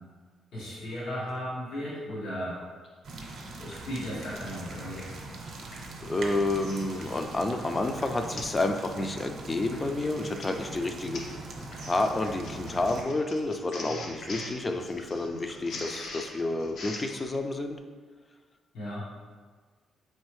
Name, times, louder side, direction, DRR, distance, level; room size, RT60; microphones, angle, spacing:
voice 1, 0.5-2.6 3.6-5.1 18.7-19.1, equal, 85° left, -9 dB, 1.3 m, -35 dB
sound 1, 1.0-1.4 1.7-1.8 2.1-2.2 2.6-3.4 3.7-5.9 6.2-7.2 7.5-7.6 8.0-8.5 9.0-9.4 9.7-9.8 10.1-10.2 10.6-11.4 11.7-13.9 14.2-15.2 15.5-15.6 16.0-16.5, left 2 dB, 50° left, 1.1 m, -51 dB
sound 2, 3.0-13.0, right 2 dB, 60° right, 0.7 m, -41 dB
voice 2, 6.0-11.2 11.9-17.8, left 2 dB, 25° left, 6 dB, 0.4 m, -30 dB
Printer, 6.4-6.7 7.2-7.5 7.8-7.9 8.4-8.6 9.0-9.2 10.0-17.3, left 2 dB, 70° left, 0.7 m, -42 dB
4.5 x 3.2 x 3.1 m, 1.5 s
cardioid pair, 105°, 0 cm